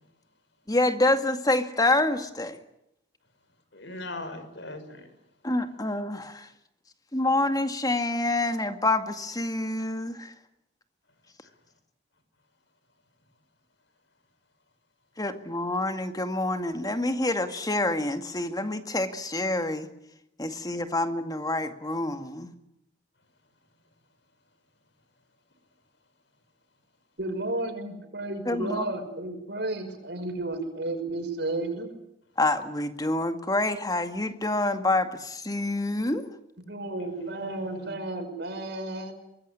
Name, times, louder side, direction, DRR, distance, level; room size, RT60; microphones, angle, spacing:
voice 1, 0.7-2.6 5.4-6.5 7.1-10.3 15.2-19.9 20.4-22.5 28.5-28.8 32.4-36.3, left 2 dB, 20° left, 8 dB, 2.1 m, -27 dB
voice 2, 3.7-5.1 37.0-37.9, left 2 dB, 70° left, 10 dB, 5.4 m, -40 dB
voice 3, 27.2-31.9 36.7-39.1, right 2 dB, 60° right, 6 dB, 5.9 m, -32 dB
24.0 x 21.0 x 10.0 m, 0.80 s
head